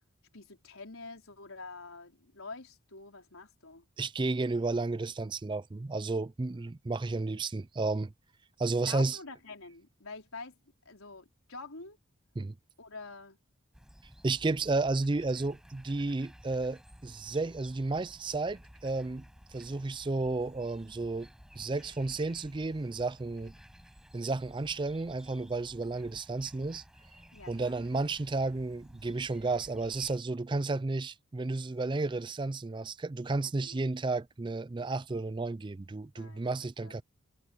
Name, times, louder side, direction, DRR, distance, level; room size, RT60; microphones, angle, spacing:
voice 1, 0.3-3.9 8.8-10.6 10.8-12.0 12.8-13.4 27.3-27.8 33.4-33.8 36.1-36.4 36.8-37.0, left 3 dB, 80° left, 4.3 m, -46 dB
voice 2, 4.0-8.1 8.6-9.2 12.4-12.6 14.2-19.2 19.5-21.3 21.6-23.5 24.1-26.8 27.5-37.0, right 3 dB, 20° right, 0.4 m, -32 dB
sound 1, 13.7-30.2, equal, 5° right, 5.6 m, -55 dB
head